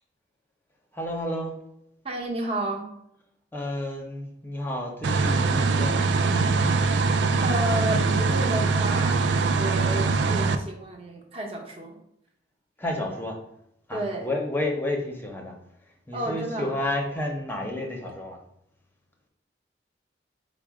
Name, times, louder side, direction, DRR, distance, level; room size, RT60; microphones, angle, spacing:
voice 1, 0.9-1.6 3.5-6.1 12.8-13.4 13.9-15.5 16.1-18.4, left 1 dB, 10° left, 1 dB, 0.7 m, -31 dB
voice 2, 2.0-2.9 7.4-9.2 9.6-12.0 13.9-14.3 16.1-16.8, right 1 dB, 30° right, -1 dB, 0.8 m, -31 dB
sound 1, 5.0-10.6, right 4 dB, 75° right, 0.4 m, -23 dB
4.7 x 2.1 x 4.7 m, 0.77 s
head